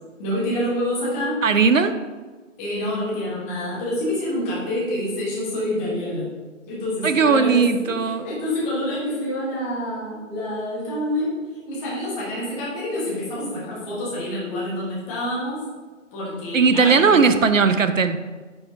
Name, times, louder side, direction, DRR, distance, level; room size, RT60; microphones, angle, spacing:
voice 1, 0.2-1.4 2.6-6.3 6.7-7.9 8.2-11.3 11.6-15.7 16.1-17.3, left 1 dB, 10° left, -7 dB, 1.2 m, -27 dB
voice 2, 1.4-2.0 7.0-8.3 16.5-18.2, right 5 dB, 75° right, 10 dB, 0.6 m, -18 dB
9.4 x 4.6 x 2.7 m, 1.3 s
figure-of-eight pair, 145°, 39 cm